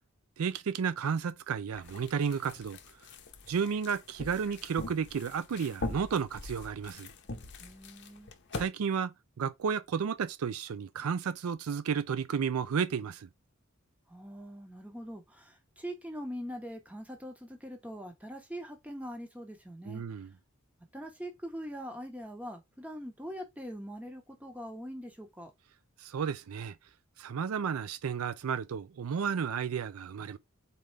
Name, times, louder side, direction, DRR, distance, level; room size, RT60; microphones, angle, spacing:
voice 1, 0.4-2.8 3.5-7.1 8.5-13.3 19.9-20.3 26.0-26.7 27.2-30.4, right 6 dB, 90° right, 0.4 m, -32 dB
sound 1, 1.7-8.7, left 2 dB, 55° left, 0.7 m, -43 dB
voice 2, 7.6-8.3 14.1-20.0 20.9-25.5, equal, 5° right, 1.0 m, -42 dB
4.3 x 3.8 x 3.3 m
head